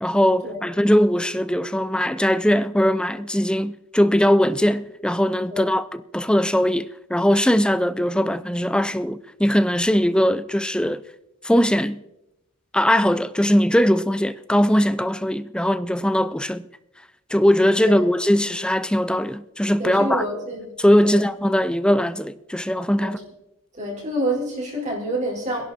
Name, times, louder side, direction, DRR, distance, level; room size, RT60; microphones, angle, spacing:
voice 1, 0.0-5.8 6.1-11.0 11.4-12.0 12.7-16.6 17.3-20.2 20.8-23.2, equal, 5° left, 0.5 m, -20 dB
voice 2, 19.8-20.7 21.0-21.3 23.0-23.1 23.7-25.7, right 1 dB, 35° right, 4.8 m, -27 dB
24.5 x 11.0 x 4.3 m
head